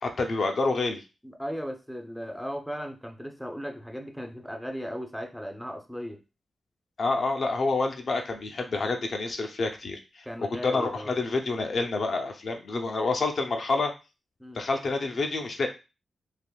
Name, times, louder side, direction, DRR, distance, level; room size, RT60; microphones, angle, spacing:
voice 1, 0.0-1.0 7.0-10.0 10.6-13.9 14.5-15.7, left 3 dB, 60° left, 4 dB, 0.5 m, -28 dB
voice 2, 1.2-6.2 10.3-11.1 14.4-14.6, equal, ahead, 4 dB, 0.5 m, -37 dB
3.4 x 2.5 x 2.2 m, 0.29 s
cardioid pair, 80°, 0 cm